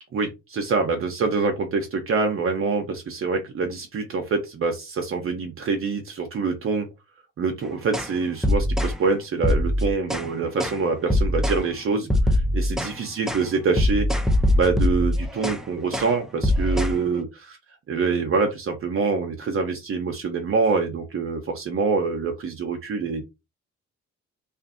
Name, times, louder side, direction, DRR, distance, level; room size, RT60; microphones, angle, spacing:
voice 1, 0.1-6.9 7.4-14.1 14.5-17.6 17.9-23.2, right 4 dB, 45° right, 0.6 m, -25 dB
sound 1, 7.9-8.1 8.4-9.0 9.4-10.3 10.6-10.8 11.1-11.6 12.1-12.9 13.3-13.5 13.8-15.6 15.9-16.1 16.4-17.0, left 1 dB, ahead, 0.3 m, -22 dB
2.5 x 2.4 x 2.5 m
cardioid pair, 90°, 30 cm